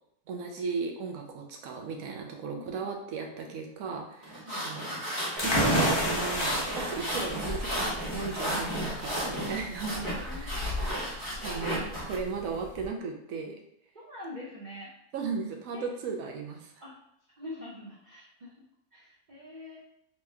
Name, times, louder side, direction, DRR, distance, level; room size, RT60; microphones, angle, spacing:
voice 1, 0.3-4.4 4.6-4.8 5.4-10.0 10.3-10.7 11.4-13.5 15.1-16.7, right 5 dB, 70° right, 2 dB, 1.0 m, -36 dB
sound 1, 4.2-12.2, equal, 15° right, 1.1 m, -34 dB
voice 2, 4.5-5.1 10.1-11.1 13.9-14.9 15.7-15.9 16.8-16.9 17.4-18.5 18.9-19.8, left 1 dB, 45° right, -6 dB, 0.6 m, -45 dB
sound 2, 5.4-12.9, equal, 35° left, 0.4 m, -31 dB
3.1 x 3.0 x 3.4 m, 0.76 s
omnidirectional pair, 1.6 m